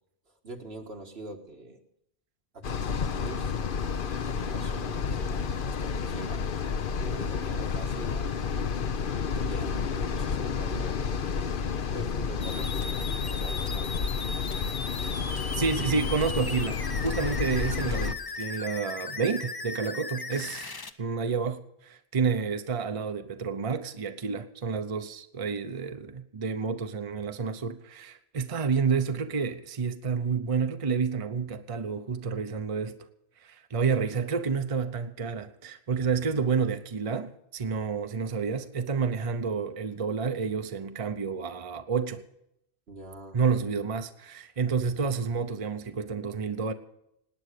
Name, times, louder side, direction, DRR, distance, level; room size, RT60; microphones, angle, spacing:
voice 1, 0.3-1.8 2.5-6.5 7.0-8.5 9.3-13.9 42.9-43.4, right 2 dB, 75° right, 1.8 m, -44 dB
sound 1, 2.6-18.1, left 6 dB, 60° left, 0.9 m, -30 dB
sound 2, 12.4-20.9, left 3 dB, 25° left, 0.6 m, -37 dB
voice 2, 15.5-33.0 33.4-42.2 43.3-46.7, right 5 dB, 35° right, 0.8 m, -29 dB
18.5 x 9.5 x 6.6 m
omnidirectional pair, 1.1 m